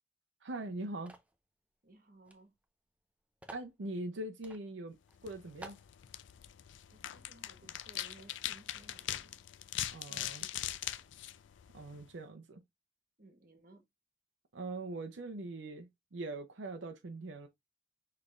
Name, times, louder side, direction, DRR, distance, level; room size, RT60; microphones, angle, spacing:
voice 1, 0.4-1.1 3.5-5.0 5.2-5.8 9.9-10.5 11.7-12.6 14.5-17.5, right 2 dB, 75° right, 0.6 m, -42 dB
sound 1, 1.1-1.4 2.3-2.4 2.6-2.7 3.4-3.7 4.4-4.6 5.1-5.2 5.6-5.9, right 1 dB, 5° right, 0.5 m, -50 dB
voice 2, 1.8-2.5 6.9-9.4 10.0-11.0 13.2-13.8, right 2 dB, 45° right, 1.2 m, -60 dB
sound 2, 5.1-12.1, left 12 dB, 80° left, 0.4 m, -42 dB
6.0 x 3.2 x 2.4 m
head